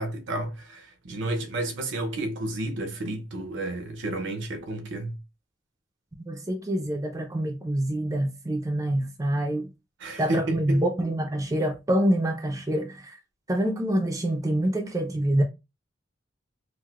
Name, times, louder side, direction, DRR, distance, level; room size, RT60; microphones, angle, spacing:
voice 1, 0.0-5.2 10.0-10.8, right 1 dB, 65° right, 0.7 m, -31 dB
voice 2, 6.2-9.7 10.2-13.2 13.5-15.4, right 1 dB, 15° right, 0.4 m, -26 dB
4.6 x 2.0 x 2.3 m
head